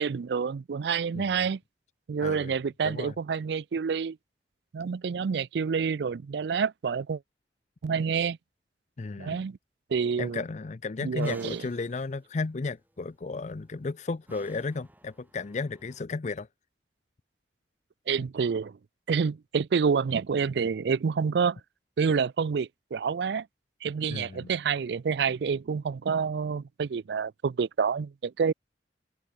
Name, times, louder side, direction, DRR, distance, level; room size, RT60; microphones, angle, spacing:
voice 1, 0.0-1.6 2.1-4.2 4.7-7.2 7.8-8.4 9.2-9.6 9.9-10.4 11.0-11.6 18.1-18.8 19.1-21.6 22.0-23.5 23.8-28.5, right 6 dB, 70° right, 0.4 m, -28 dB
voice 2, 1.1-1.5 2.2-2.5 2.8-3.1 9.0-9.4 10.2-16.5 24.1-24.5, left 3 dB, 40° left, 0.5 m, -34 dB
sound 1, 11.0-16.0, right 1 dB, 10° right, 4.7 m, -57 dB
head